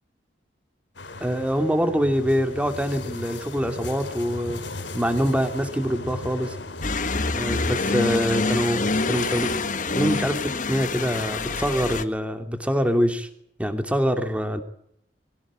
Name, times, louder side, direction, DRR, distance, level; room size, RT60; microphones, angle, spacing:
sound 1, 0.9-12.0, left 2 dB, 85° left, 3.1 m, -38 dB
voice 1, 1.2-4.6 4.9-6.6 7.3-9.5 9.9-13.3 13.6-14.6, equal, 5° right, 7 dB, 2.8 m, -24 dB
sound 2, 6.8-12.0, left 3 dB, 45° left, 1.4 m, -26 dB
23.5 x 16.5 x 9.0 m, 0.74 s
head